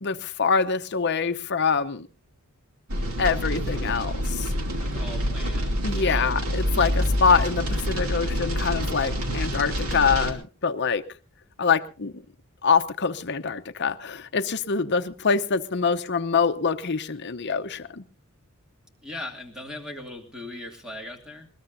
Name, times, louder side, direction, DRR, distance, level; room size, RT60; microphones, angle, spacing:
voice 1, 0.0-2.1 3.2-4.5 5.8-11.0 11.6-12.2 12.6-18.0, left 5 dB, 50° left, 9 dB, 0.8 m, -25 dB
sound 1, 2.9-10.3, equal, 80° right, 2.7 m, -27 dB
voice 2, 4.8-6.2 19.0-21.5, left 1 dB, 5° right, 2 dB, 2.7 m, -39 dB
20.5 x 20.0 x 2.7 m, 0.35 s
head